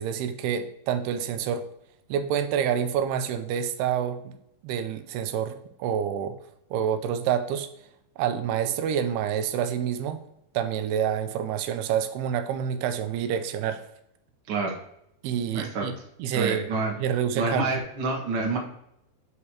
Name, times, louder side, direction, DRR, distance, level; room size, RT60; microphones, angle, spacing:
voice 1, 0.0-1.7 2.1-4.4 4.6-6.4 6.7-7.7 8.2-10.2 10.5-13.9 15.2-16.7 17.0-17.7, right 8 dB, 85° right, 9 dB, 2.6 m, -27 dB
voice 2, 14.5-14.8 15.5-15.8 16.3-17.0 17.3-18.6, right 3 dB, 55° right, -1 dB, 1.5 m, -27 dB
8.3 x 4.8 x 2.8 m, 0.76 s
omnidirectional pair, 4.6 m